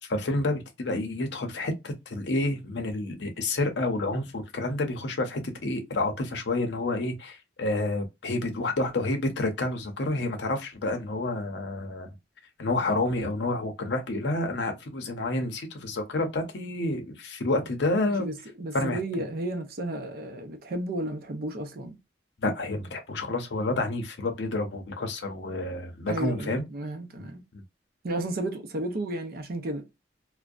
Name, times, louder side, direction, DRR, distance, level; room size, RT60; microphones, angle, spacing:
voice 1, 0.1-12.1 12.6-18.3 18.7-19.0 22.4-26.6, left 2 dB, 70° left, 0.6 m, -29 dB
voice 2, 18.1-22.0 26.1-27.4 28.0-29.9, right 1 dB, 50° right, 0.5 m, -33 dB
2.6 x 2.1 x 2.3 m
head